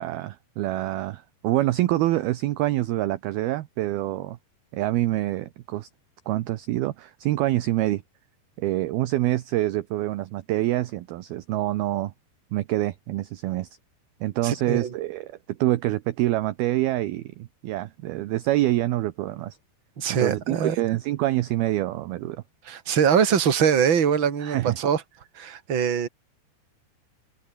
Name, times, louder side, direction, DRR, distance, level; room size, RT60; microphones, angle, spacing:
voice 1, 0.0-4.4 4.7-5.9 6.3-8.0 8.6-12.1 12.5-13.7 14.2-19.6 20.2-22.4 24.4-24.8, right 16 dB, 75° right, 2.4 m, -26 dB
voice 2, 14.4-14.9 20.0-20.8 22.6-25.0 25.3-26.1, right 7 dB, 30° right, 2.7 m, -23 dB
open air
omnidirectional pair, 5.4 m